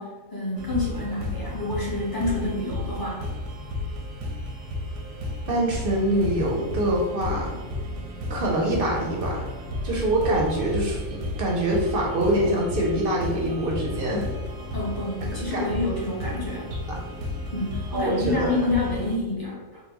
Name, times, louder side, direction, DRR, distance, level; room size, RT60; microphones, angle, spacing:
voice 1, 0.0-3.3 14.7-16.7 17.5-19.8, left 2 dB, 20° left, -6 dB, 0.6 m, -28 dB
sound 1, 0.6-19.2, left 1 dB, 85° right, 1.0 m, -33 dB
voice 2, 5.5-7.5 8.3-9.4 9.8-14.3 15.5-15.6 16.9-17.0 17.9-18.5, right 1 dB, 60° right, -2 dB, 0.6 m, -24 dB
3.9 x 2.1 x 2.8 m, 1.3 s
omnidirectional pair, 1.3 m